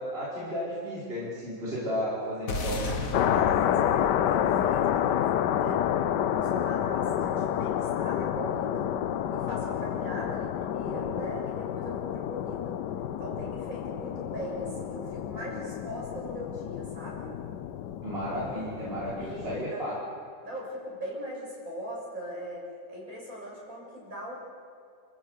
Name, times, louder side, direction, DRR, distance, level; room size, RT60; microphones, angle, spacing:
voice 1, 0.0-3.0 18.0-20.0, equal, 30° right, -7 dB, 5.5 m, -33 dB
sound 1, 2.5-6.9, left 3 dB, 50° left, 1.9 m, -36 dB
voice 2, 2.5-8.9 9.3-12.8 13.2-17.3 18.8-20.0 20.4-24.3, equal, 50° right, -4 dB, 7.3 m, -40 dB
sound 2, 3.1-19.7, left 10 dB, 75° left, 1.4 m, -29 dB
29.5 x 15.0 x 8.3 m, 2.4 s
omnidirectional pair, 1.9 m